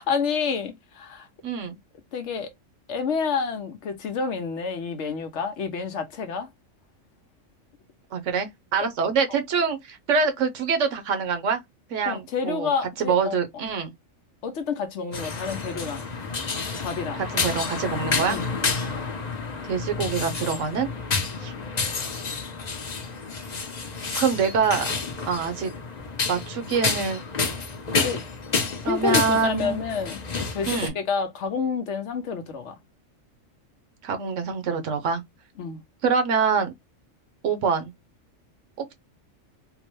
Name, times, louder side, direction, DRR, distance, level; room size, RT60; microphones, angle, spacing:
voice 1, 0.0-1.3 2.1-2.5 2.9-6.5 8.8-8.9 12.0-13.4 14.4-16.1 16.8-17.2 18.2-18.7 28.0-28.2 28.8-32.8 35.6-35.8, left 5 dB, 65° left, 0.9 m, -29 dB
voice 2, 1.4-1.8 8.1-11.6 11.9-12.7 13.0-13.9 17.3-18.4 19.6-20.9 21.4-21.5 24.2-24.8 25.3-25.7 26.3-27.2 28.8-29.8 30.7-30.9 34.0-35.2 36.0-36.7 37.4-37.9, right 5 dB, 70° right, 1.1 m, -25 dB
sound 1, 15.1-30.9, left 4 dB, 40° left, 0.7 m, -29 dB
3.7 x 2.1 x 3.0 m
omnidirectional pair, 1.4 m